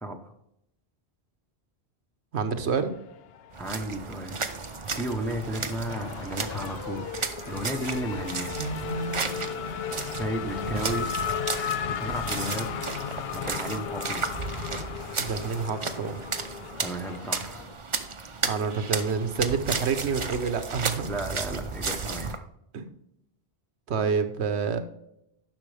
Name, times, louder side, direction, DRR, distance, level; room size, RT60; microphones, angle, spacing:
voice 1, 0.0-0.3 3.6-4.4 5.0-8.6 10.2-11.1 11.9-12.7 13.3-14.3 16.8-17.7 21.0-22.4, right 1 dB, ahead, 3 dB, 0.8 m, -34 dB
voice 2, 2.3-2.9 8.6-9.7 10.1-10.3 12.4-12.9 15.2-16.2 18.4-21.1 22.7-22.9 23.9-24.8, right 5 dB, 85° right, 9 dB, 1.1 m, -29 dB
Race car auto racing / Accelerating revving vroom, 2.8-3.7 4.1-17.7, left 8 dB, 70° left, 0.8 m, -35 dB
sound 1, 3.5-22.4, right 4 dB, 35° right, 0.7 m, -34 dB
10.5 x 6.2 x 3.4 m, 0.80 s
omnidirectional pair, 1.1 m